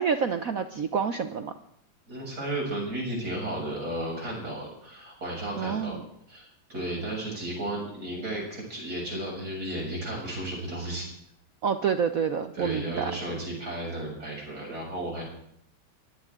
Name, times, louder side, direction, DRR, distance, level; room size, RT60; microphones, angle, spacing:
voice 1, 0.0-1.5 5.6-6.0 11.6-13.1, right 6 dB, 65° right, 9 dB, 0.8 m, -28 dB
voice 2, 2.1-6.0 6.3-11.1 12.5-15.2, right 1 dB, 45° right, -2 dB, 7.8 m, -34 dB
23.5 x 16.5 x 3.7 m, 0.71 s
omnidirectional pair, 2.4 m